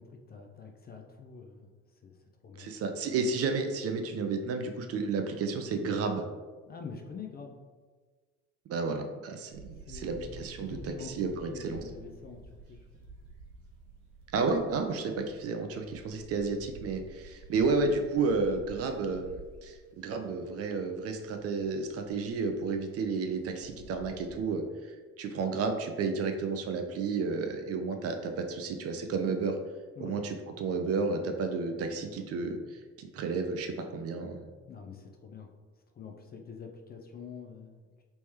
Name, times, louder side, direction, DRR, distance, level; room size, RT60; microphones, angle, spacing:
voice 1, 0.0-1.7 2.0-2.1 2.4-2.7 6.6-7.6 9.9-12.9 15.2-15.3 17.6-18.0 30.0-30.2 34.7-35.5 35.9-38.0, left 5 dB, 25° left, 2 dB, 0.5 m, -46 dB
voice 2, 2.6-6.2 8.7-11.8 14.3-29.5 30.0-34.4, right 4 dB, 40° right, 5 dB, 0.5 m, -32 dB
sound 1, 9.5-24.3, right 3 dB, 65° right, 0.9 m, -51 dB
3.3 x 3.0 x 3.1 m, 1.4 s
figure-of-eight pair, 55°, 38 cm